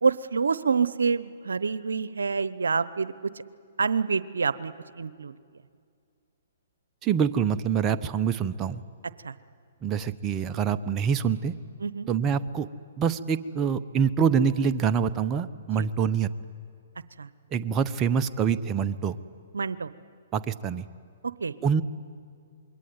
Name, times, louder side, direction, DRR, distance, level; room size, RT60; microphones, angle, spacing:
voice 1, 0.0-3.3 3.8-5.3 9.2-9.3 11.8-12.1 15.8-15.9 17.2-17.3 19.5-19.9 21.2-21.5, right 5 dB, 85° right, 16 dB, 0.8 m, -27 dB
voice 2, 7.0-8.8 9.8-11.5 12.1-12.7 13.0-16.3 17.5-19.2 20.3-20.8 21.6-21.8, right 7 dB, 25° right, 9 dB, 0.8 m, -25 dB
26.5 x 22.5 x 9.5 m, 2.3 s
hypercardioid pair, 135°, 0 cm